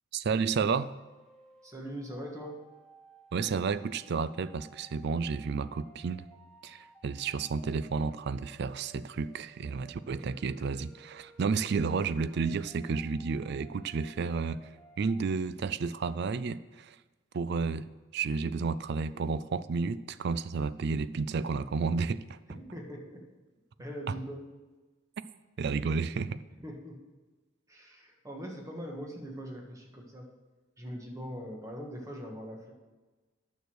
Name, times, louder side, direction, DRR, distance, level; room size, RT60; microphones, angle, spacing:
voice 1, 0.1-0.9 3.3-6.3 6.6-14.6 15.0-17.0 17.3-17.9 18.1-22.4 25.6-26.4, right 5 dB, 50° right, 15 dB, 0.4 m, -31 dB
sound 1, 1.0-15.3, right 2 dB, 5° left, 0.8 m, -58 dB
voice 2, 1.6-2.7 22.6-23.2 23.8-24.5 26.5-27.0 27.7-30.3 30.8-32.7, equal, 15° right, 0 dB, 1.5 m, -41 dB
9.5 x 6.4 x 6.3 m, 1.2 s
head